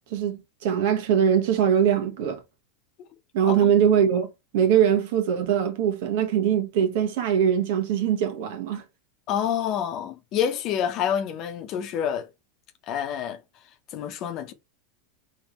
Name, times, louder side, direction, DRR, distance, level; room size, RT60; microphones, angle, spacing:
voice 1, 0.1-2.4 3.3-4.3 4.5-8.8, right 8 dB, 65° right, 1.3 m, -22 dB
voice 2, 9.3-12.3 12.9-13.4 13.9-14.5, left 9 dB, 45° left, 0.9 m, -28 dB
3.5 x 3.2 x 4.3 m
supercardioid pair, 120°, 0 cm